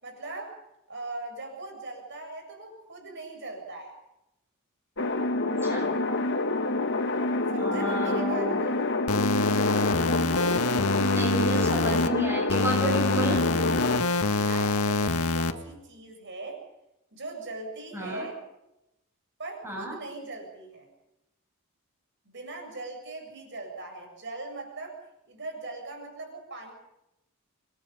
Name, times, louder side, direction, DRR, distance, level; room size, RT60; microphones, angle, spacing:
voice 1, 0.0-0.6 0.9-3.9 7.5-8.8 14.3-16.6 17.1-18.4 19.4-20.9 22.3-25.0 25.3-26.7, right 2 dB, 55° right, 3 dB, 7.7 m, -40 dB
sound 1, 5.0-14.0, left 2 dB, 55° left, 1.9 m, -27 dB
voice 2, 5.4-5.9 7.6-8.6 11.0-13.4 17.9-18.2 19.6-19.9, right 1 dB, 10° right, -1 dB, 7.8 m, -31 dB
sound 2, 9.1-12.1 12.5-15.5, left 3 dB, 85° left, 1.7 m, -26 dB
28.0 x 22.0 x 5.4 m, 0.88 s
head